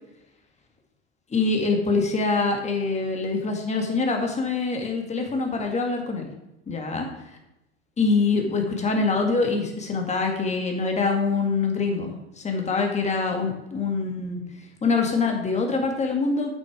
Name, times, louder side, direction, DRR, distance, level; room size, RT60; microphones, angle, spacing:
voice 1, 1.3-6.3 6.7-7.1 8.0-14.4 14.8-16.5, left 4 dB, 20° left, 3 dB, 2.0 m, -24 dB
8.4 x 6.3 x 5.1 m, 0.92 s
supercardioid pair, 110°, 32 cm